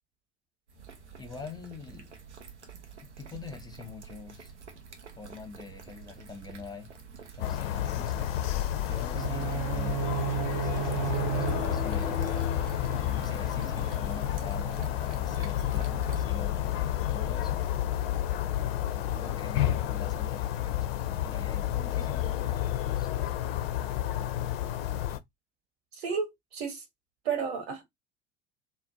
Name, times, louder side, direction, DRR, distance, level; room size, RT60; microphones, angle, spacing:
sound 1, 0.7-16.3, right 5 dB, 85° right, 0.6 m, -45 dB
voice 1, 1.2-2.1 3.2-4.5 5.2-6.9 7.3-8.3 8.8-12.3 13.1-17.6 19.1-20.7 21.2-23.3, left 4 dB, 10° left, 0.7 m, -45 dB
sound 2, 7.4-25.2, left 12 dB, 65° left, 0.5 m, -30 dB
sound 3, 9.1-13.1, right 12 dB, 40° right, 0.5 m, -34 dB
voice 2, 25.9-26.8 27.2-27.8, right 6 dB, 65° right, 1.0 m, -32 dB
2.5 x 2.1 x 2.6 m
figure-of-eight pair, 70°, 33 cm